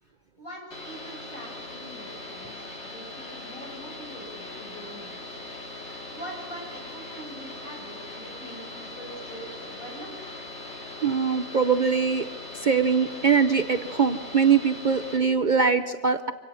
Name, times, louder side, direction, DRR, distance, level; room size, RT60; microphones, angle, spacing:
voice 1, 0.4-5.1 6.1-10.3, right 1 dB, 80° left, -1 dB, 6.8 m, -43 dB
sound 1, 0.7-15.2, left 2 dB, 50° left, 3.3 m, -40 dB
voice 2, 11.0-12.3 12.5-16.3, right 6 dB, 45° right, 10 dB, 0.7 m, -22 dB
25.5 x 17.0 x 6.9 m, 1.4 s
omnidirectional pair, 1.4 m